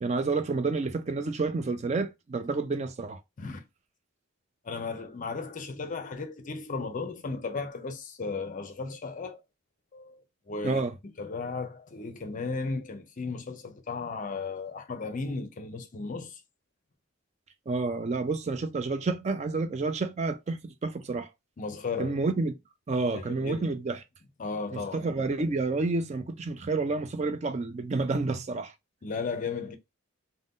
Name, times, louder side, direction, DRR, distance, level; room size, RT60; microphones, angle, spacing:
voice 1, 0.0-3.2 10.6-10.9 17.7-21.3 22.0-22.5 22.9-24.0 24.7-28.7, right 3 dB, 35° right, 0.4 m, -29 dB
voice 2, 4.6-9.4 9.9-10.8 11.2-16.4 21.6-22.2 23.1-23.7 24.4-25.1 29.0-29.8, left 4 dB, 40° left, 0.5 m, -35 dB
2.6 x 2.1 x 3.6 m
head